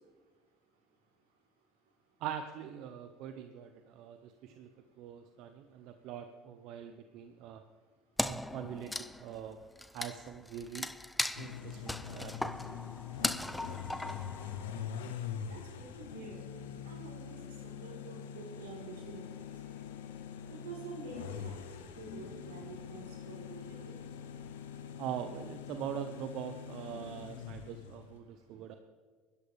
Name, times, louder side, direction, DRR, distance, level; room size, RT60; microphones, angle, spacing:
voice 1, 2.2-4.7 5.0-7.6 8.2-8.9 9.2-9.6 9.9-10.9 11.4-12.5 25.0-28.8, right 9 dB, 65° right, 8 dB, 0.8 m, -43 dB
Wood, 8.2-14.9, left 1 dB, 5° left, 0.6 m, -38 dB
sound 1, 11.4-28.2, left 8 dB, 85° left, 0.8 m, -44 dB
voice 2, 15.5-16.4 16.8-17.5 17.8-19.2 19.8-19.9 20.5-21.6 22.0-23.9, right 4 dB, 90° right, -2 dB, 3.9 m, -48 dB
22.0 x 11.5 x 3.5 m, 1.5 s
hypercardioid pair, 80°, 0 cm